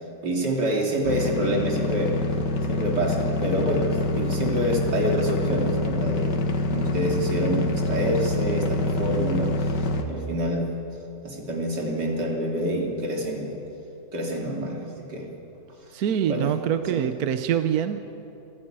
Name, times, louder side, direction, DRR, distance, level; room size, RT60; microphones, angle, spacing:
voice 1, 0.2-2.1 2.7-6.4 6.7-10.7 11.2-13.5 14.1-15.3 16.3-16.5 16.9-17.0, right 1 dB, 80° right, 0 dB, 3.6 m, -27 dB
sound 1, 1.0-10.0, left 2 dB, 90° left, 2.2 m, -26 dB
voice 2, 15.9-18.0, right 9 dB, 65° right, 9 dB, 1.2 m, -24 dB
25.5 x 15.0 x 8.9 m, 3.0 s
omnidirectional pair, 1.8 m